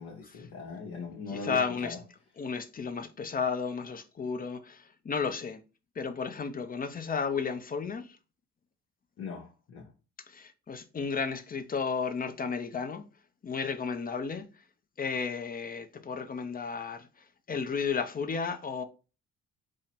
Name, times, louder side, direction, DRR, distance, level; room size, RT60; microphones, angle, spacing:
voice 1, 0.0-2.0 9.2-9.9, left 4 dB, 65° left, 0.9 m, -40 dB
voice 2, 1.3-2.0 2.4-5.6 6.0-8.1 10.3-13.0 13.4-14.5 15.0-17.1 17.5-18.8, left 5 dB, 30° left, 0.5 m, -33 dB
3.6 x 2.1 x 4.1 m
cardioid pair, 90°, 30 cm